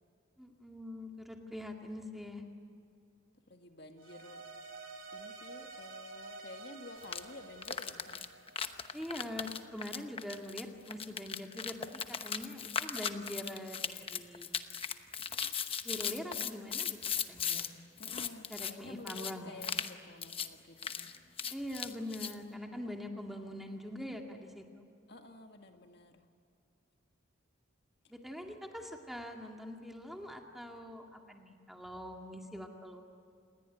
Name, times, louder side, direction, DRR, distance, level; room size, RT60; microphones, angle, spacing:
voice 1, 0.4-2.4 8.9-14.6 15.8-17.7 18.5-19.6 21.5-24.8 28.1-33.0, left 1 dB, ahead, 2 dB, 2.0 m, -43 dB
voice 2, 3.5-4.4 5.1-8.3 18.0-21.1 25.1-26.2, left 2 dB, 55° left, 5 dB, 2.0 m, -51 dB
sound 1, 4.0-9.3, right 3 dB, 80° right, 3.4 m, -50 dB
sound 2, 7.0-7.2 7.6-17.7 18.0-18.7 19.1-19.3 19.6-19.9 20.2-20.5 20.8-22.3, left 7 dB, 25° left, 1.0 m, -37 dB
28.0 x 21.0 x 9.1 m, 2.4 s
head